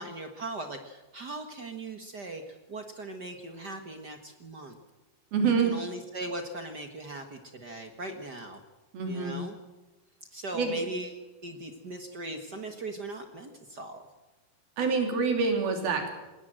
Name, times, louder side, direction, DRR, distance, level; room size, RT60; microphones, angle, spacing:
voice 1, 0.0-4.8 5.4-8.6 9.1-9.6 10.3-14.0, right 2 dB, 55° right, 6 dB, 1.2 m, -39 dB
voice 2, 5.3-5.8 8.9-9.4 10.5-10.7 14.8-16.1, right 5 dB, 80° right, 4 dB, 4.9 m, -26 dB
21.0 x 18.0 x 7.6 m, 1.1 s
omnidirectional pair, 4.3 m